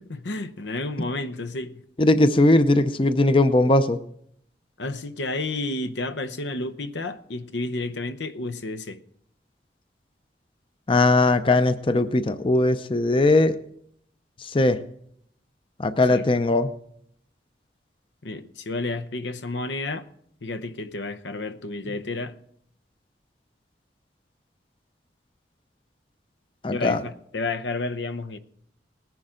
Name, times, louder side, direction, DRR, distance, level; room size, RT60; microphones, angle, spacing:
voice 1, 0.1-1.8 4.8-9.0 16.1-16.2 18.2-20.1 20.4-22.4 26.7-28.4, left 2 dB, 85° left, 0.8 m, -31 dB
voice 2, 2.0-4.0 10.9-13.6 14.4-14.8 15.8-16.7 26.6-27.0, left 2 dB, 30° left, 0.6 m, -19 dB
19.0 x 10.5 x 3.7 m
head